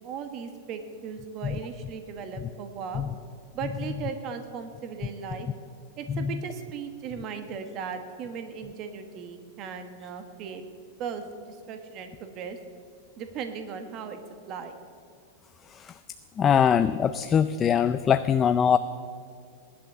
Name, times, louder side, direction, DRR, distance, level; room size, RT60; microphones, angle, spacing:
voice 1, 0.0-3.0 3.5-5.5 6.0-10.6 11.0-12.6 13.2-14.2 14.5-14.8, right 6 dB, 30° right, 7 dB, 1.3 m, -37 dB
voice 2, 15.7-16.0 16.4-18.8, left 8 dB, 20° left, 11 dB, 0.4 m, -23 dB
18.0 x 11.5 x 6.7 m, 2.3 s
supercardioid pair, 165°, 0 cm